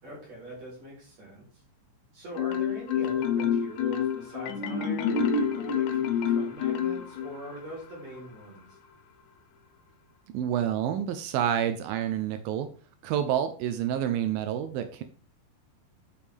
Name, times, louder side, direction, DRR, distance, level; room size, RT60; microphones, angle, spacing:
voice 1, 0.0-1.5 2.1-8.8, equal, 40° right, -3 dB, 5.6 m, -42 dB
Marimba xylophone, 2.4-7.5, left 7 dB, 80° left, 3.4 m, -27 dB
voice 2, 10.3-12.7 13.0-15.0, right 10 dB, 85° right, 9 dB, 2.0 m, -28 dB
9.5 x 7.3 x 3.5 m, 0.41 s
omnidirectional pair, 5.1 m